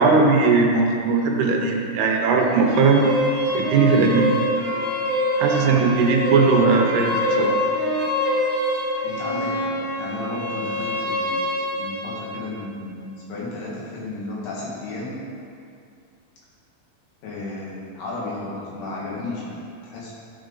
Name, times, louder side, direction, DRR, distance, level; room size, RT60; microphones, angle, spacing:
voice 1, 0.0-3.1 3.5-4.3 5.4-7.6, right 4 dB, 80° right, 1 dB, 2.8 m, -19 dB
sound 1, 2.4-12.4, equal, 20° left, 1.5 m, -25 dB
voice 2, 5.5-5.8 9.0-15.2 17.2-20.1, left 2 dB, 75° left, -6 dB, 3.9 m, -33 dB
13.0 x 6.1 x 3.9 m, 2.4 s
omnidirectional pair, 4.7 m